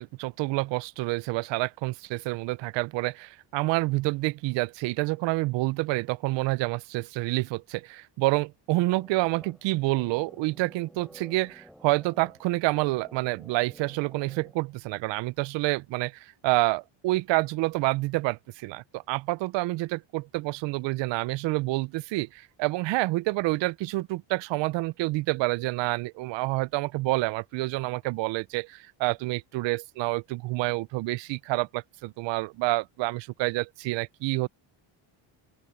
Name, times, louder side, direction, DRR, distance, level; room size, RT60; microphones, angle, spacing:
voice 1, 0.0-34.5, right 21 dB, 65° right, 0.5 m, -28 dB
sound 1, 8.9-14.9, equal, ahead, 3.4 m, -52 dB
open air
cardioid pair, 165°, 49 cm